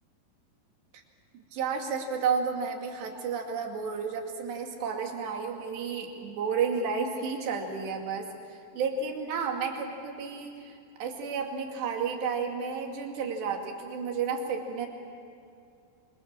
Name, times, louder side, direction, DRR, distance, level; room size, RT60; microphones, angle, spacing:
voice 1, 1.3-8.3 8.8-14.9, right 5 dB, 90° right, 2 dB, 4.6 m, -32 dB
27.5 x 24.5 x 7.4 m, 2.5 s
omnidirectional pair, 4.8 m